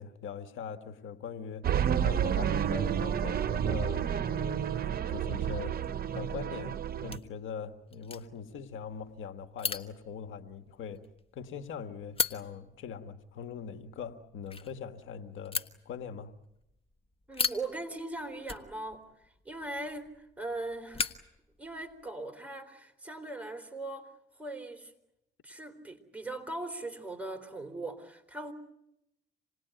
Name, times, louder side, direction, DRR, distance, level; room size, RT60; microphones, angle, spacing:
voice 1, 0.0-1.7 2.0-4.7 5.1-5.8 6.1-6.8 7.0-11.0 11.3-16.3, left 7 dB, 80° left, 1.6 m, -41 dB
sound 1, 1.6-7.2, right 9 dB, 50° right, 0.9 m, -30 dB
sound 2, 2.5-22.1, left 4 dB, 30° left, 1.4 m, -41 dB
voice 2, 17.3-19.1 19.5-21.1 21.6-24.1 24.4-24.9 25.4-28.5, right 2 dB, 5° right, 3.8 m, -40 dB
27.5 x 19.5 x 9.2 m
cardioid pair, 90°, 20 cm